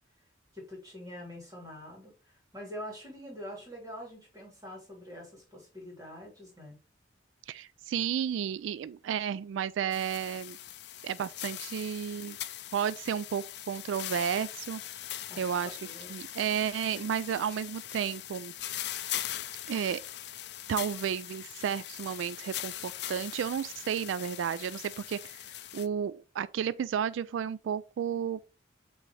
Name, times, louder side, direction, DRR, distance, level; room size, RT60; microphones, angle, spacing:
voice 1, 0.5-6.8 15.3-16.2, equal, 20° right, 3.1 m, -45 dB
voice 2, 7.5-10.6 11.0-12.4 12.7-14.8 15.4-15.8 16.1-18.5 19.7-20.0 20.7-25.5 25.7-28.4, right 8 dB, 80° right, 0.3 m, -32 dB
sound 1, 9.9-25.9, left 13 dB, 60° left, 0.5 m, -41 dB
8.3 x 3.9 x 3.3 m
head